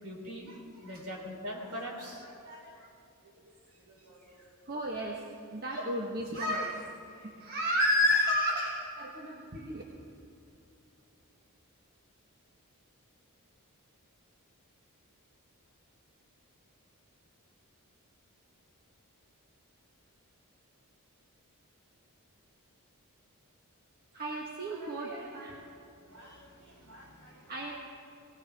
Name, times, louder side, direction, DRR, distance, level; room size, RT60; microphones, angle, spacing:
voice 1, 0.0-2.9 3.2-3.3 3.7-4.4 26.0-27.5, equal, 70° right, -1 dB, 3.7 m, -44 dB
voice 2, 4.4-5.2 5.5-6.9 7.1-9.8 24.1-25.6 27.5-27.7, left 1 dB, 45° right, -2 dB, 1.3 m, -31 dB
19.0 x 19.0 x 3.5 m, 2.8 s
head